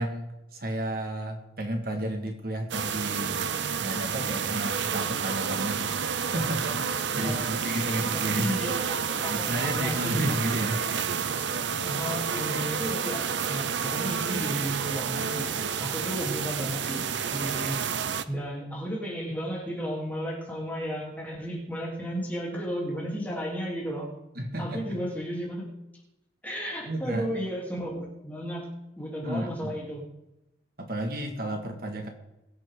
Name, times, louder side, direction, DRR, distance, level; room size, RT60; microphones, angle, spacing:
voice 1, 0.0-3.4 3.8-6.0 6.3-8.5 9.3-11.0 24.4-25.0 26.9-27.3 29.2-29.7 30.8-32.1, right 1 dB, 55° right, 3 dB, 1.9 m, -32 dB
sound 1, 2.7-18.2, right 7 dB, 80° right, 0.7 m, -30 dB
voice 2, 7.1-10.5 11.8-15.5 15.8-17.9 18.3-24.1 24.6-25.7 26.4-28.6 29.0-30.1, equal, 10° left, -3 dB, 3.2 m, -34 dB
22.0 x 9.0 x 3.8 m, 0.92 s
head